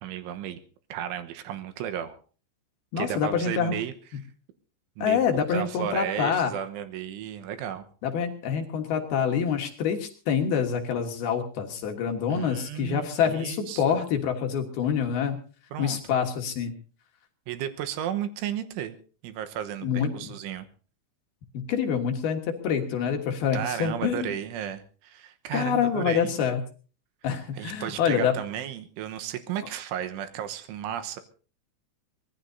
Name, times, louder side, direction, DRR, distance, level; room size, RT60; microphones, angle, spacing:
voice 1, 0.0-0.6 0.9-2.2 3.0-3.9 5.0-7.9 12.3-14.0 15.7-16.0 17.5-19.0 19.2-20.7 23.5-26.3 27.6-31.2, right 10 dB, 85° right, 9 dB, 3.5 m, -34 dB
voice 2, 2.9-3.8 5.0-6.5 8.0-15.4 15.8-16.7 19.8-20.3 21.5-24.4 25.5-26.6 27.2-28.4, left 7 dB, 65° left, 4 dB, 2.9 m, -26 dB
24.0 x 19.5 x 2.7 m, 0.40 s
omnidirectional pair, 5.6 m